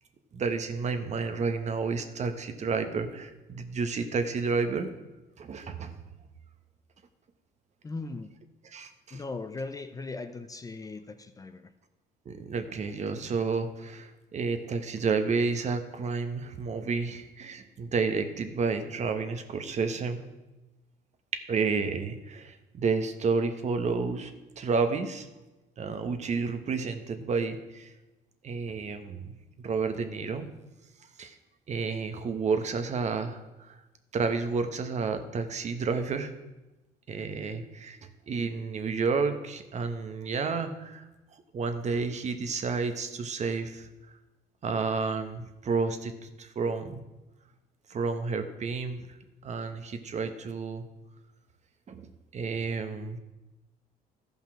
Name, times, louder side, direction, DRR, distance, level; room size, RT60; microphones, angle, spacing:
voice 1, 0.3-4.9 5.4-5.9 8.7-9.2 12.2-20.2 21.3-25.3 25.8-27.9 28.4-30.5 31.2-31.4 31.7-33.8 34.1-36.3 37.1-38.0 38.3-41.0 41.5-43.9 44.6-47.0 47.9-49.1 49.4-50.8 51.9-53.2, right 4 dB, 45° right, 8 dB, 1.1 m, -31 dB
voice 2, 7.8-8.3 9.1-11.7, left 3 dB, 20° left, 9 dB, 0.6 m, -38 dB
13.5 x 5.5 x 6.0 m, 1.0 s
cardioid pair, 110°, 17 cm